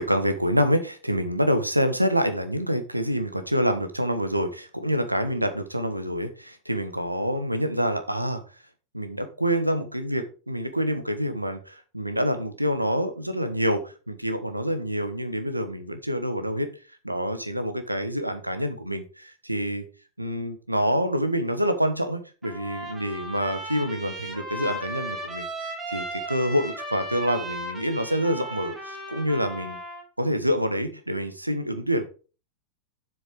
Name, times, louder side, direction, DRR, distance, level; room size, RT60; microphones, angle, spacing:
voice 1, 0.0-8.4 8.9-16.7 17.0-19.8 20.2-29.8 30.2-32.0, equal, 85° right, 8 dB, 1.2 m, -27 dB
Trumpet, 22.4-30.0, right 1 dB, 15° right, 3.0 m, -36 dB
7.6 x 6.2 x 5.1 m, 0.36 s
figure-of-eight pair, 90°, 0 cm